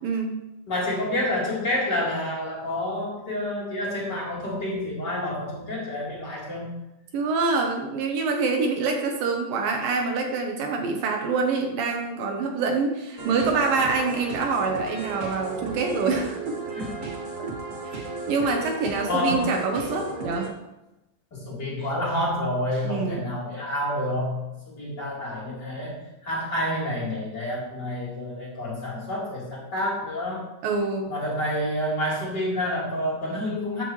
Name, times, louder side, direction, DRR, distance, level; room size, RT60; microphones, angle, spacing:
voice 1, 0.0-0.3 7.1-16.6 17.9-18.0 18.3-20.5 22.8-23.2 30.6-31.1, right 4 dB, 75° right, 2 dB, 2.7 m, -25 dB
voice 2, 0.7-6.7 16.8-17.0 19.1-19.5 21.3-24.4 24.7-30.5 31.1-33.8, left 1 dB, 30° left, -6 dB, 3.9 m, -28 dB
sound 1, 13.2-20.5, right 3 dB, 35° right, 1.3 m, -35 dB
14.0 x 9.4 x 3.2 m, 0.96 s
omnidirectional pair, 4.3 m